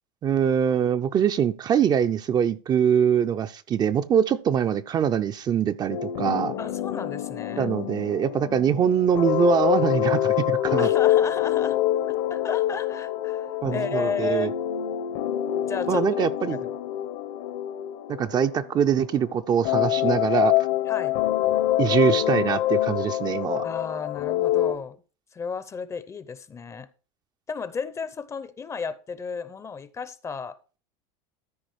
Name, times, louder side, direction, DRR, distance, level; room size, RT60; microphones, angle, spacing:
voice 1, 0.2-6.6 7.6-10.9 13.6-14.5 15.9-16.6 18.2-20.5 21.8-23.6, right 8 dB, 30° right, 0.5 m, -23 dB
sound 1, 5.9-19.2 19.6-24.8, left 13 dB, 65° left, 1.2 m, -26 dB
voice 2, 6.6-7.7 10.8-11.8 12.1-14.6 15.7-16.1 16.5-16.7 20.9-21.2 23.6-25.0 25.3-26.9 27.5-30.6, left 5 dB, 20° left, 0.7 m, -33 dB
13.0 x 4.8 x 4.7 m
supercardioid pair, 130°, 14 cm